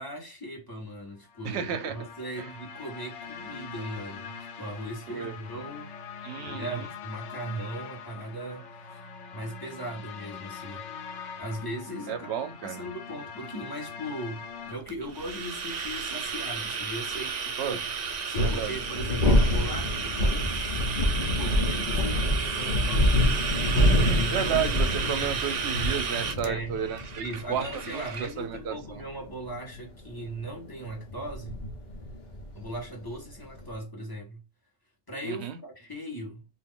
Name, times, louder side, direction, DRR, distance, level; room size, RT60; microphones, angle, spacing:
voice 1, 0.0-5.9 6.4-9.1 9.3-10.9 11.4-17.8 18.3-20.6 21.4-24.6 26.4-26.8 27.2-31.6 32.5-34.4 35.1-36.5, right 1 dB, 20° left, 1.4 m, -38 dB
sound 1, 1.2-14.7, left 6 dB, 85° left, 1.0 m, -43 dB
voice 2, 1.4-2.0 2.4-2.5 5.1-5.3 6.2-6.9 12.1-12.8 17.6-17.8 18.4-18.7 21.4-21.7 24.3-28.0 28.4-29.0 35.2-35.6, right 8 dB, 70° right, 0.8 m, -32 dB
sound 2, 14.9-28.3, right 6 dB, 50° right, 0.5 m, -33 dB
sound 3, 16.0-16.1 18.1-33.7, left 1 dB, 45° left, 0.8 m, -27 dB
2.9 x 2.5 x 3.6 m
omnidirectional pair, 1.2 m